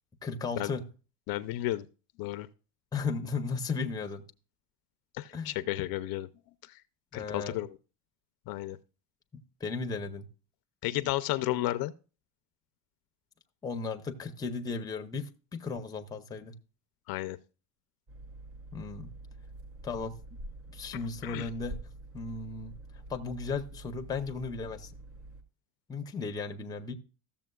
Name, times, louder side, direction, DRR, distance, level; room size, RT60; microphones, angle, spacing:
voice 1, 0.2-0.8 2.9-4.2 5.3-5.6 7.1-7.6 9.3-10.3 13.6-16.6 18.7-19.1 19.8-20.2 20.7-21.8 22.1-22.7 23.1-24.9 25.9-26.9, left 4 dB, 10° left, 5 dB, 0.6 m, -35 dB
voice 2, 1.3-1.9 2.2-2.5 5.1-6.3 6.7-6.8 7.1-7.7 8.5-8.8 10.8-11.9 17.1-17.4 21.2-21.5, left 16 dB, 55° left, 12 dB, 0.5 m, -32 dB
sound 1, 18.1-25.4, right 1 dB, 30° right, 1.3 m, -47 dB
13.5 x 7.1 x 2.2 m, 0.35 s
cardioid pair, 155°, 44 cm